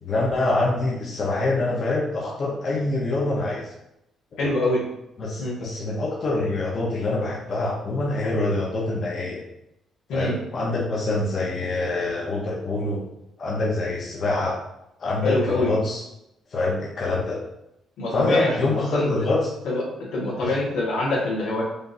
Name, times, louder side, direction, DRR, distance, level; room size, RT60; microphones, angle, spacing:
voice 1, 0.0-3.7 4.3-4.5 5.2-9.4 10.1-13.0 13.4-14.6 15.0-16.0 16.5-17.4 18.1-19.5, left 2 dB, 50° left, -4 dB, 0.8 m, -25 dB
voice 2, 4.4-4.8 5.4-5.6 10.1-10.3 15.2-15.7 18.0-19.1 19.6-19.8 20.1-21.6, left 2 dB, 85° left, -5 dB, 1.4 m, -24 dB
5.0 x 2.6 x 2.6 m, 0.86 s
cardioid pair, 90°, 0 cm